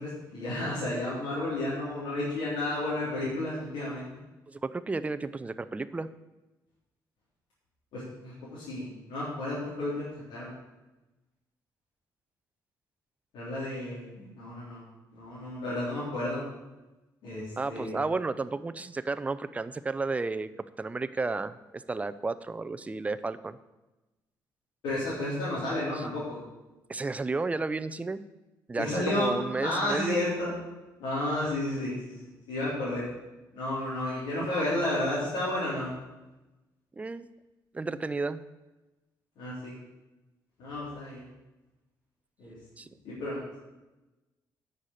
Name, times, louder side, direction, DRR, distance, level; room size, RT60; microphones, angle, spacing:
voice 1, 0.0-4.1 7.9-10.6 13.3-14.8 15.1-16.4 17.2-18.0 24.8-26.4 28.7-29.3 29.6-30.5 31.0-33.1 33.5-35.9 39.4-39.8 40.6-41.3 42.4-42.5 43.0-43.6, left 1 dB, 85° left, -9 dB, 3.9 m, -32 dB
voice 2, 4.5-6.1 17.6-20.5 20.8-23.6 26.0-26.1 26.9-28.2 28.7-30.2 37.0-37.3 37.7-38.4 42.8-42.9, right 3 dB, 20° right, 12 dB, 0.5 m, -32 dB
9.6 x 6.8 x 6.5 m, 1.1 s
cardioid pair, 105°, 8 cm